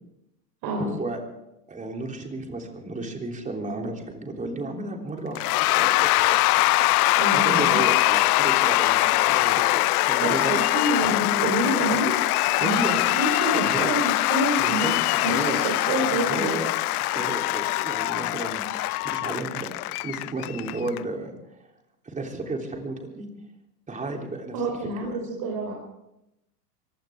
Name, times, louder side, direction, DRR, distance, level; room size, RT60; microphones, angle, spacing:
voice 1, 0.8-1.2 1.7-6.6 7.3-10.6 12.6-13.1 13.6-13.9 14.6-15.6 16.3-16.7 17.1-18.6 19.0-19.7 20.0-21.3 22.0-23.3 23.9-24.5 25.0-25.2, right 2 dB, 15° right, 2 dB, 3.4 m, -32 dB
Cheering / Applause / Crowd, 5.4-21.0, left 19 dB, 65° left, 0.6 m, -23 dB
voice 2, 7.2-7.8 10.2-14.9 15.2-16.5 24.5-25.7, right 2 dB, 50° right, 0 dB, 4.3 m, -28 dB
24.0 x 16.0 x 3.7 m, 0.88 s
hypercardioid pair, 110°, 49 cm